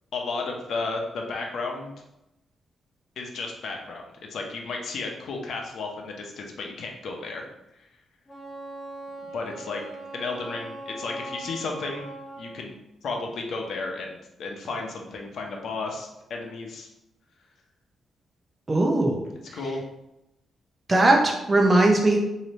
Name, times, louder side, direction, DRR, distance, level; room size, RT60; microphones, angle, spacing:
voice 1, 0.1-1.9 3.2-7.5 9.2-9.8 10.1-12.1 12.4-12.7 13.0-16.9 19.5-19.8, left 3 dB, 70° left, 1 dB, 0.7 m, -33 dB
Wind instrument woodwind instrument, 8.3-12.6, right 2 dB, 20° left, 1.3 m, -40 dB
voice 2, 18.7-19.2 20.9-22.2, right 2 dB, 25° right, 1 dB, 0.7 m, -19 dB
3.2 x 2.8 x 4.0 m, 0.89 s
cardioid pair, 120°, 0 cm